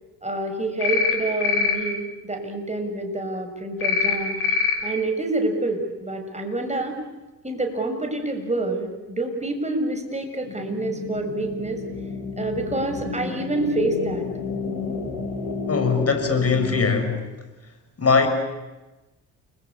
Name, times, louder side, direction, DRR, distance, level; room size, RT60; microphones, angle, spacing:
voice 1, 0.2-4.4 4.8-7.0 7.4-11.8 12.4-14.3, right 2 dB, 15° right, 4 dB, 6.7 m, -27 dB
sound 1, 0.8-1.2 1.4-1.8 3.8-4.1 4.4-4.7, left 5 dB, 85° left, 4.0 m, -22 dB
sound 2, 10.4-16.8, left 4 dB, 55° left, 6.5 m, -31 dB
voice 2, 15.7-17.2 18.0-18.3, left 4 dB, 35° left, 7 dB, 6.5 m, -21 dB
29.0 x 22.0 x 8.5 m, 1.1 s
hypercardioid pair, 50°, 43 cm